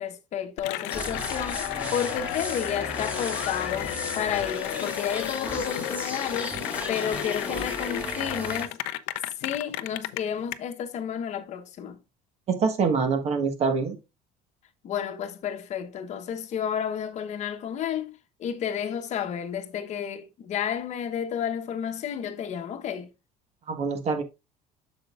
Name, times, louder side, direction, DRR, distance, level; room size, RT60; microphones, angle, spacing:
voice 1, 0.0-6.6 6.9-8.8 9.4-12.0 14.8-18.1 18.4-23.1, left 8 dB, 45° left, 1.1 m, -31 dB
Cheering / Applause, 0.6-10.5, left 16 dB, 90° left, 0.5 m, -33 dB
sound 1, 0.9-8.7, equal, 10° right, 3.0 m, -36 dB
voice 2, 12.5-14.0 23.7-24.2, right 5 dB, 40° right, 1.4 m, -25 dB
7.6 x 6.6 x 2.5 m
cardioid pair, 135°, 17 cm